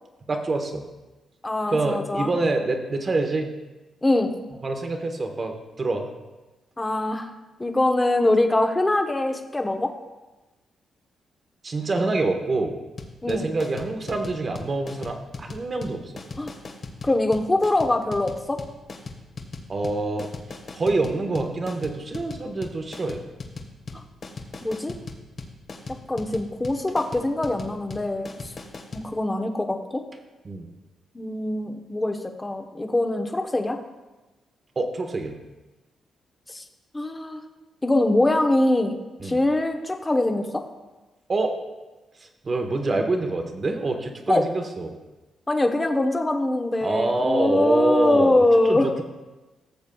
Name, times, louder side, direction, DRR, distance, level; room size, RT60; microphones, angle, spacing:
voice 1, 0.3-0.8 1.7-3.5 4.6-6.1 11.6-12.8 13.3-16.1 19.7-20.3 20.7-23.2 30.4-30.7 34.8-35.4 39.2-39.4 41.3-41.5 42.4-45.0 46.8-49.0, right 2 dB, 40° right, 5 dB, 1.2 m, -26 dB
voice 2, 1.4-2.3 4.0-4.4 6.8-7.3 7.6-9.9 13.2-13.5 16.4-16.5 17.0-18.6 24.6-24.9 26.1-28.5 28.9-30.0 31.1-33.8 36.5-36.6 36.9-37.4 37.8-40.6 44.3-44.5 45.5-48.9, left 2 dB, 20° left, 5 dB, 1.0 m, -23 dB
sound 1, 13.0-29.1, left 3 dB, 50° left, 1.4 m, -38 dB
16.0 x 7.2 x 2.3 m, 1.1 s
cardioid pair, 80°, 0 cm